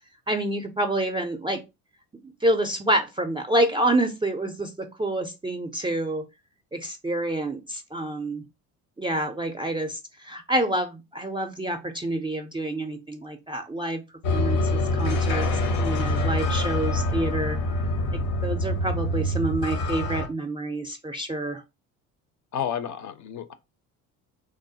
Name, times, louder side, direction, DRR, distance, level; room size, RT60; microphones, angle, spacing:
voice 1, 0.3-1.6 2.2-6.2 6.7-8.4 9.0-14.0 14.3-15.5 15.8-17.6 18.1-21.6, right 1 dB, 15° right, 0.3 m, -28 dB
sound 1, 14.2-20.3, left 1 dB, 80° left, 0.7 m, -25 dB
voice 2, 22.5-23.5, left 9 dB, 45° left, 0.5 m, -31 dB
3.1 x 2.0 x 2.7 m
hypercardioid pair, 65°, 42 cm